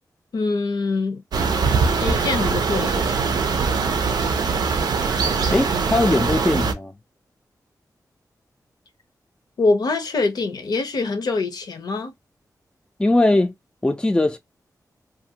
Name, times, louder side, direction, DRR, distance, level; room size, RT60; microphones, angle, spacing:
voice 1, 0.3-1.2 2.0-3.2 9.6-12.1, left 3 dB, 70° left, 0.6 m, -24 dB
sound 1, 1.3-6.7, right 5 dB, 85° right, 0.5 m, -22 dB
voice 2, 5.5-6.9 13.0-13.5 13.8-14.4, left 2 dB, 10° left, 0.4 m, -20 dB
2.5 x 2.3 x 2.8 m
wide cardioid pair, 90°, 7 cm